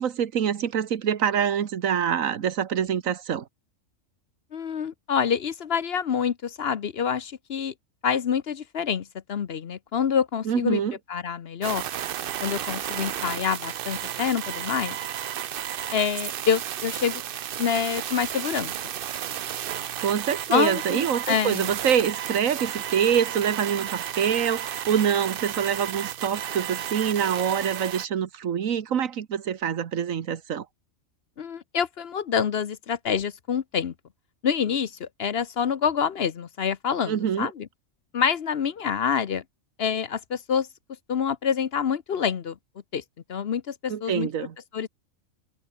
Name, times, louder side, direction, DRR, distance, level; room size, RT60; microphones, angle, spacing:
voice 1, 0.0-3.5 10.4-10.9 20.0-30.6 37.1-37.5 43.9-44.5, right 8 dB, 80° right, 1.5 m, -25 dB
voice 2, 4.5-7.7 8.0-10.8 11.1-11.8 12.4-15.0 15.9-17.2 17.6-18.7 20.5-21.7 31.4-33.9 34.4-37.7 38.1-39.4 39.8-40.7 41.1-42.6 42.9-43.0 43.3-44.3 44.7-44.9, left 7 dB, 55° left, 1.0 m, -26 dB
sound 1, 11.6-28.1, right 10 dB, 55° right, 0.6 m, -33 dB
omnidirectional pair, 1.4 m